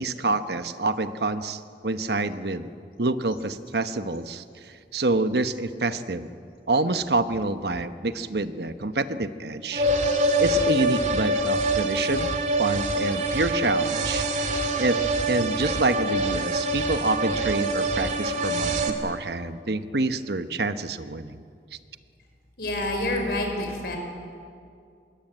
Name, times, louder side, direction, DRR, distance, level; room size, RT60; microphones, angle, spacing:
voice 1, 0.0-2.7 3.0-6.3 6.7-9.9 10.4-12.3 12.6-14.5 14.8-15.0 15.3-21.4, right 2 dB, 70° right, 10 dB, 1.1 m, -27 dB
sound 1, 9.7-18.9, right 1 dB, 40° right, 2.3 m, -25 dB
voice 2, 22.6-24.0, left 1 dB, 60° left, 3 dB, 5.2 m, -27 dB
24.5 x 21.5 x 9.1 m, 2.3 s
head